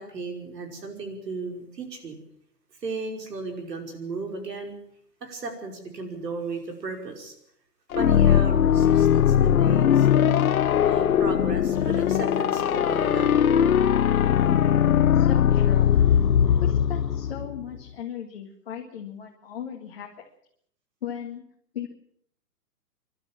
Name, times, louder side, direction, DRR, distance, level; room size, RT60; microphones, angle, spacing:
voice 1, 0.0-2.1 2.8-4.7 5.2-7.3 8.0-10.1 10.8-13.3, right 3 dB, 85° right, 4 dB, 5.5 m, -35 dB
sound 1, 7.9-17.6, left 9 dB, 60° left, 0.8 m, -20 dB
sound 2, 8.8-10.6 11.7-14.6 15.5-17.4, left 4 dB, 10° left, 2.9 m, -45 dB
voice 2, 15.1-15.9 16.6-20.2 21.0-21.4 21.7-21.9, left 9 dB, 40° left, 1 dB, 1.9 m, -37 dB
29.5 x 12.0 x 7.4 m, 0.66 s
hypercardioid pair, 180°, 47 cm